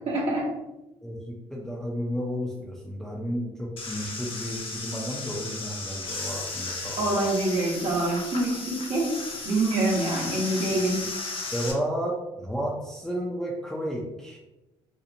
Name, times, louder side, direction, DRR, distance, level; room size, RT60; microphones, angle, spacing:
voice 1, 0.1-0.5 7.0-9.1 9.4-11.0, right 2 dB, 60° right, -5 dB, 0.9 m, -25 dB
voice 2, 1.0-7.1 11.5-14.4, equal, 5° left, -2 dB, 0.4 m, -32 dB
sound 1, 3.8-11.7, left 3 dB, 45° left, 0.6 m, -35 dB
2.8 x 2.0 x 2.6 m, 1.0 s
supercardioid pair, 65°, 12 cm